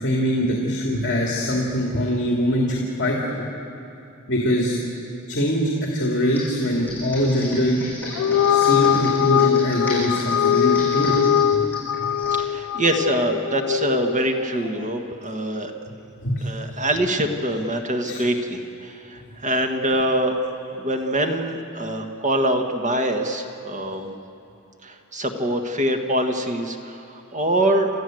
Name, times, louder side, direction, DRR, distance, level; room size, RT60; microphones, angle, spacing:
voice 1, 0.0-3.2 4.3-4.8 5.3-7.8 8.5-11.2 11.5-11.6 12.0-12.1 16.2-16.4 18.0-18.2, equal, 55° left, -2 dB, 2.7 m, -23 dB
Computer keyboard, 6.3-12.4, left 1 dB, 10° left, 7.1 m, -35 dB
sound 1, 8.1-14.7, left 9 dB, 75° left, 0.4 m, -21 dB
voice 2, 12.4-15.7 16.4-24.2 24.8-27.9, right 1 dB, 35° right, 4 dB, 1.6 m, -24 dB
29.5 x 13.5 x 7.8 m, 2.8 s
head